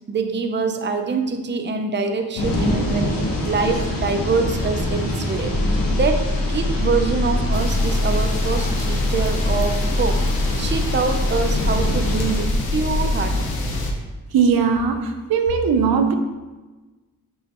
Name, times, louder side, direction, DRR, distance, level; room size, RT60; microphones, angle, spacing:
voice 1, 0.1-3.1 3.4-5.5 5.9-13.4, right 4 dB, 30° right, 6 dB, 0.6 m, -25 dB
sound 1, 2.4-12.4, left 1 dB, 70° left, 1.3 m, -26 dB
sound 2, 5.5-13.2, left 2 dB, 15° left, 0.6 m, -24 dB
sound 3, 7.5-13.9, left 2 dB, 85° left, 0.9 m, -28 dB
voice 2, 14.3-16.1, right 6 dB, 85° right, 6 dB, 0.6 m, -19 dB
6.3 x 5.5 x 3.0 m, 1.2 s
wide cardioid pair, 105°, 35 cm